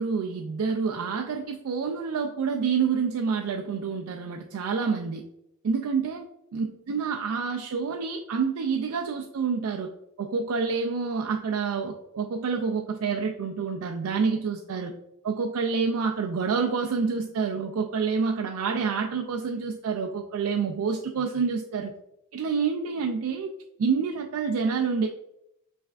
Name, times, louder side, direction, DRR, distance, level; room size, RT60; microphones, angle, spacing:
voice 1, 0.0-5.2 5.6-6.2 6.5-9.9 10.2-14.9 15.2-21.9 22.3-23.5 23.8-25.1, right 5 dB, 70° right, 2 dB, 0.4 m, -28 dB
5.6 x 3.3 x 2.4 m, 0.81 s
head